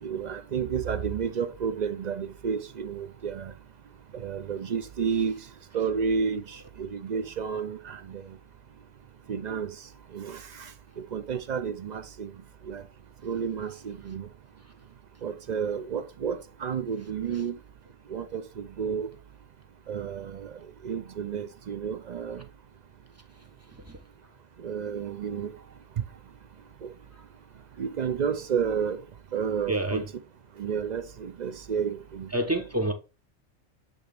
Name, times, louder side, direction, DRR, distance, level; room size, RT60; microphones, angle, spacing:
voice 1, 0.0-3.5 4.1-5.3 5.7-8.2 9.3-9.7 10.1-10.7 11.0-12.3 12.7-12.8 13.2-14.3 15.2-17.6 18.1-19.1 19.9-22.4 24.6-25.5 26.8-26.9 27.8-29.0 29.3-30.0 30.6-32.3, right 6 dB, 55° right, 0.5 m, -31 dB
voice 2, 29.7-30.0 32.3-32.9, right 1 dB, 15° right, 0.6 m, -27 dB
8.1 x 3.5 x 3.4 m
omnidirectional pair, 1.3 m